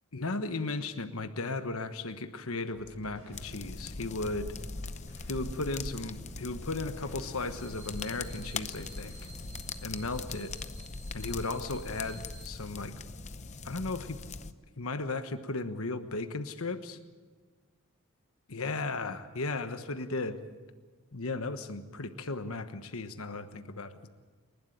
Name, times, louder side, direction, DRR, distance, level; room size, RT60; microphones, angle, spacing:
voice 1, 0.1-4.5 5.3-9.1 9.8-10.5 11.1-12.9 13.6-14.2 14.8-17.0 18.5-20.4 21.1-24.1, left 3 dB, 70° left, 9 dB, 1.3 m, -35 dB
sound 1, 2.7-10.4, equal, 60° right, 4.3 m, -52 dB
sound 2, 3.3-14.5, left 4 dB, 30° left, 0.7 m, -41 dB
sound 3, 7.5-12.5, right 3 dB, 10° right, 5.5 m, -54 dB
29.0 x 12.0 x 8.9 m, 1.4 s
head